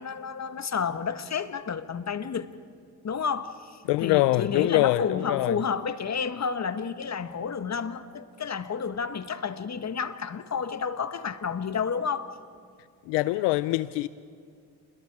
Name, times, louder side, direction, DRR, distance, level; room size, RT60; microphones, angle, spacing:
voice 1, 0.0-2.5 3.0-12.3, left 6 dB, 40° left, 1.5 m, -31 dB
voice 2, 3.9-5.6 13.1-14.1, left 18 dB, 80° left, 0.6 m, -24 dB
28.5 x 22.0 x 4.9 m
supercardioid pair, 55°, 41 cm